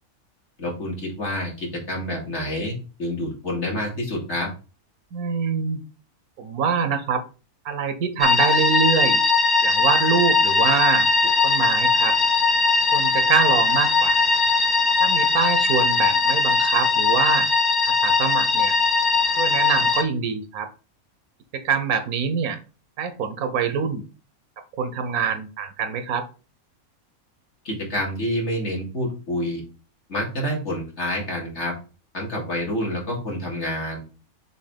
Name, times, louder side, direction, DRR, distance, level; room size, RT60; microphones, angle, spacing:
voice 1, 0.6-4.5 27.6-29.6 30.1-31.7 32.1-34.0, left 1 dB, 50° left, -2 dB, 2.5 m, -28 dB
voice 2, 5.1-5.8 6.4-7.2 7.6-9.2 9.6-12.2 12.9-14.2 15.0-17.5 17.8-18.8 19.4-20.7 21.5-22.6 23.0-24.0 24.8-26.3, right 6 dB, 85° right, 10 dB, 1.3 m, -25 dB
sound 1, 8.2-20.0, left 4 dB, 20° left, 0.9 m, -20 dB
6.6 x 3.0 x 5.1 m, 0.34 s
omnidirectional pair, 1.5 m